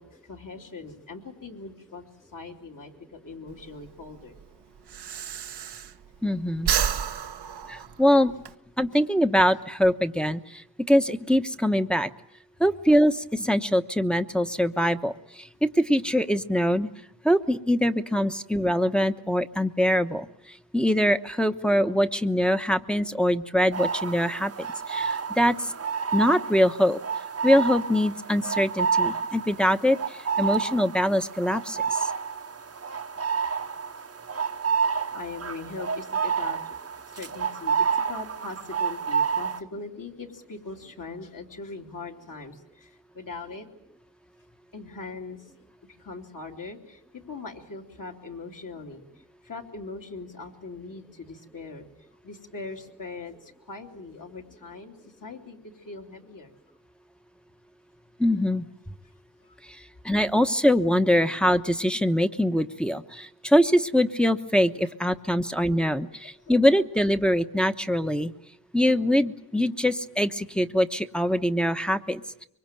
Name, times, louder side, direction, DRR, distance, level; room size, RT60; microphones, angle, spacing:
voice 1, 0.0-4.4 6.6-6.7 35.1-36.8 37.1-43.7 44.7-45.5 45.9-56.5 59.4-59.5 64.8-64.9 66.4-66.5, left 3 dB, 50° left, 2 dB, 3.1 m, -41 dB
Breathing, 3.5-6.3 6.6-8.5, right 8 dB, 80° right, 1.0 m, -30 dB
voice 2, 6.2-6.7 7.7-8.3 8.8-10.6 10.9-12.1 12.6-16.9 17.2-20.3 20.7-25.7 26.1-27.0 27.4-30.0 30.4-32.0 58.2-58.6 60.0-68.3 68.7-72.5, equal, ahead, 7 dB, 1.1 m, -23 dB
sound 1, 23.7-39.6, right 6 dB, 40° right, 1.0 m, -29 dB
25.0 x 23.5 x 9.1 m, 0.76 s
wide cardioid pair, 90°, 40 cm